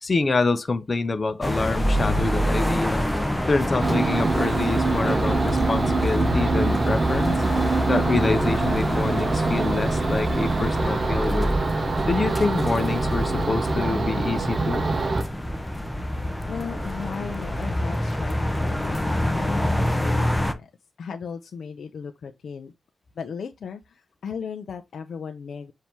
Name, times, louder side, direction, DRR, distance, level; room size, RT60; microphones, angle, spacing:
voice 1, 0.0-3.1 3.5-7.3 7.9-11.6 12.1-14.9, left 3 dB, 35° left, 0.8 m, -26 dB
sound 1, 1.4-20.5, equal, 5° left, 0.8 m, -27 dB
sound 2, 3.8-15.2, right 3 dB, 40° right, 0.9 m, -25 dB
voice 2, 16.5-20.7 21.0-22.7 23.2-25.7, left 6 dB, 75° left, 0.6 m, -36 dB
7.3 x 2.8 x 4.5 m
wide cardioid pair, 115°, 0 cm